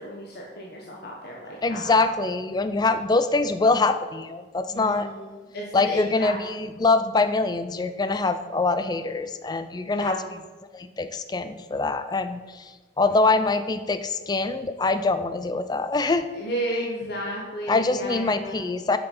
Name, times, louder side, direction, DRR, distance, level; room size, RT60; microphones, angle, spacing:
voice 1, 0.0-2.0 4.7-6.4 9.9-10.2 13.1-13.5 16.3-18.6, equal, 55° left, -3 dB, 1.1 m, -33 dB
voice 2, 1.6-5.1 5.7-10.2 10.7-12.7 13.0-16.3 17.7-19.0, left 3 dB, 20° left, 10 dB, 0.4 m, -24 dB
6.7 x 5.9 x 5.4 m, 1.3 s
head